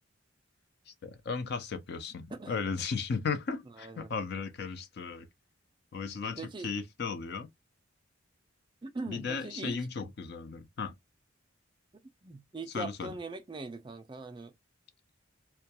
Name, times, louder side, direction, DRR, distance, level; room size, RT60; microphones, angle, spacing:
voice 1, 0.9-5.3 5.9-7.5 9.1-10.9 12.7-13.1, left 5 dB, 50° left, 0.4 m, -36 dB
voice 2, 3.8-4.1 6.4-6.7 8.8-9.8 12.2-14.5, right 3 dB, 25° right, 0.3 m, -41 dB
2.2 x 2.2 x 2.7 m
head